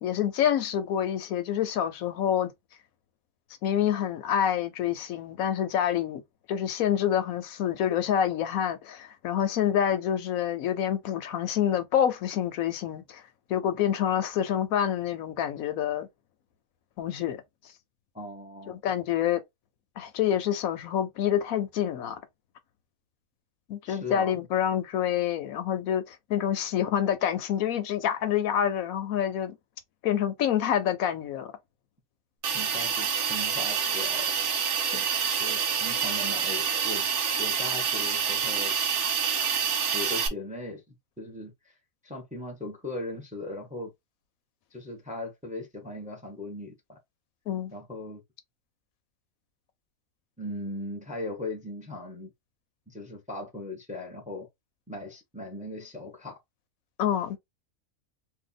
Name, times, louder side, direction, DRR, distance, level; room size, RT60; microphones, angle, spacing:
voice 1, 0.0-2.5 3.6-6.2 6.5-13.2 13.5-16.1 17.0-17.4 18.7-19.4 20.0-22.2 23.7-29.5 30.0-31.5 34.9-35.0 47.5-47.7 57.0-57.4, left 9 dB, 85° left, 1.1 m, -27 dB
voice 2, 18.1-18.8 23.8-24.4 32.5-34.3 35.4-37.0 37.4-38.7 39.9-41.8 42.0-43.9 44.7-47.0 47.7-48.2 50.4-52.3 52.9-54.5 54.9-56.4, left 2 dB, 5° right, 0.6 m, -38 dB
Hiss, 32.4-40.3, right 7 dB, 65° right, 1.0 m, -27 dB
2.8 x 2.3 x 3.9 m
omnidirectional pair, 1.5 m